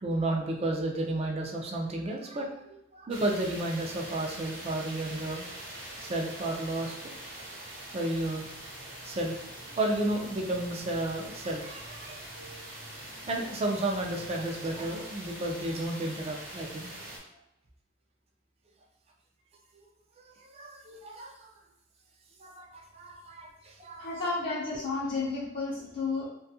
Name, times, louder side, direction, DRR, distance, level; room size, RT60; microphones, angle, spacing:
voice 1, 0.0-2.6 2.9-5.5 6.0-7.1 7.9-8.5 9.0-9.3 9.8-12.6 13.0-17.2 20.2-21.5 22.4-24.1, right 1 dB, 30° right, 1 dB, 0.4 m, -32 dB
sound 1, 3.1-17.2, right 1 dB, 85° right, 0.8 m, -43 dB
voice 2, 24.0-26.3, left 3 dB, 55° left, -7 dB, 0.5 m, -32 dB
2.6 x 2.3 x 2.7 m, 0.82 s
head